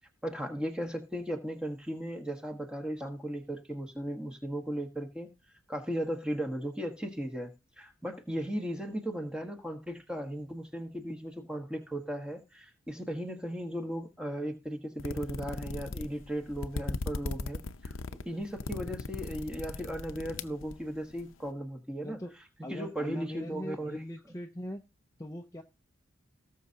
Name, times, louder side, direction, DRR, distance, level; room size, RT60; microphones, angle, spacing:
voice 1, 0.2-5.3 5.7-22.2 22.7-24.0, equal, 5° right, 1.3 m, -36 dB
sound 1, 15.0-21.2, left 3 dB, 75° left, 0.7 m, -38 dB
voice 2, 22.0-22.3 22.6-24.8 25.2-25.6, left 1 dB, 15° left, 0.6 m, -41 dB
18.5 x 6.5 x 2.8 m
head